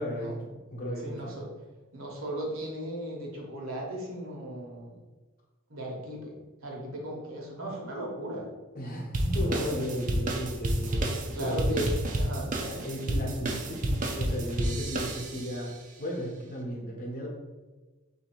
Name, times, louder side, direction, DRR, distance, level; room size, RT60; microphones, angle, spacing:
voice 1, 0.0-1.4 8.7-11.6 12.6-17.3, equal, 40° left, -2 dB, 1.0 m, -35 dB
voice 2, 1.0-1.4 1.9-5.0 5.7-6.3 6.6-8.5 9.3-9.8 11.3-11.9 12.2-12.5, right 1 dB, 70° right, -2 dB, 1.1 m, -36 dB
sound 1, 9.1-15.6, right 1 dB, 35° right, 0.5 m, -30 dB
3.4 x 2.8 x 4.5 m, 1.2 s
head